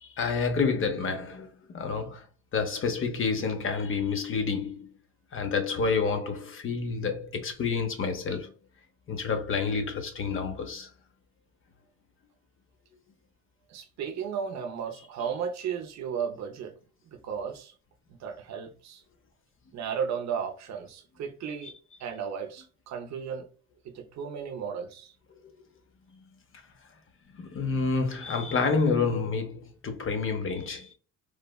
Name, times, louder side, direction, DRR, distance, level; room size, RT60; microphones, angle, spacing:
voice 1, 0.0-2.2 2.5-4.9 5.3-8.5 9.1-10.9 21.6-21.7 25.3-25.5 26.1-26.2 27.4-30.9, left 5 dB, 45° left, 0.7 m, -29 dB
voice 2, 13.7-16.7 17.0-17.7 18.1-19.0 19.7-21.7 22.0-23.5 23.8-25.1, right 7 dB, 65° right, 0.6 m, -34 dB
3.2 x 2.0 x 2.2 m
cardioid pair, 90°, 30 cm